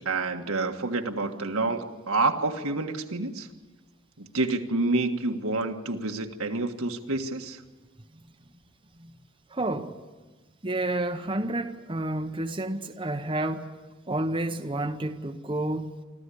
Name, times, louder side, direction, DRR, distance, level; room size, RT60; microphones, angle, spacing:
voice 1, 0.0-3.5 4.2-7.6, right 3 dB, 75° right, 5 dB, 1.6 m, -28 dB
voice 2, 9.5-9.9 10.6-13.8 14.1-15.9, right 1 dB, 25° right, 6 dB, 0.8 m, -30 dB
25.0 x 14.5 x 9.9 m, 1.2 s
head